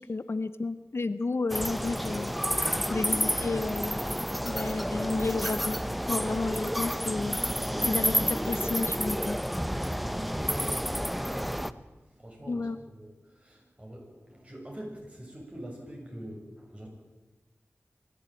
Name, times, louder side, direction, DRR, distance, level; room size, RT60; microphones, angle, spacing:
voice 1, 0.0-2.3 2.9-4.0 4.4-5.8 6.1-7.4 7.9-9.4 12.5-12.8, left 3 dB, 60° left, 13 dB, 0.8 m, -32 dB
sound 1, 1.5-11.7, equal, ahead, 0.8 m, -30 dB
voice 2, 10.0-10.8 11.1-11.5 12.1-16.9, right 1 dB, 25° right, -1 dB, 7.3 m, -45 dB
25.5 x 11.5 x 9.1 m, 1.2 s
wide cardioid pair, 55°, 5 cm